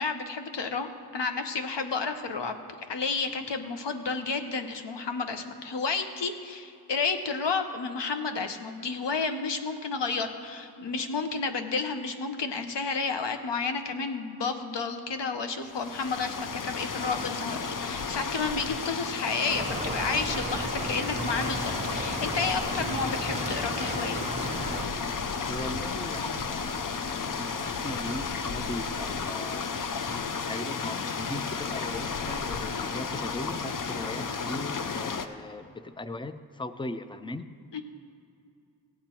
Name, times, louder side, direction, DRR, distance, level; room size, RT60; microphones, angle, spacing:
voice 1, 0.0-2.5 2.9-24.2 37.7-37.8, left 4 dB, 90° left, 7 dB, 1.0 m, -31 dB
sound 1, 15.7-35.3, left 5 dB, 50° left, 0.6 m, -33 dB
sound 2, 19.5-24.9, right 2 dB, 15° right, 1.5 m, -35 dB
voice 2, 25.5-29.7 30.3-37.5, left 1 dB, 10° left, 11 dB, 0.4 m, -38 dB
16.5 x 8.3 x 4.4 m, 2.4 s
wide cardioid pair, 90°, 41 cm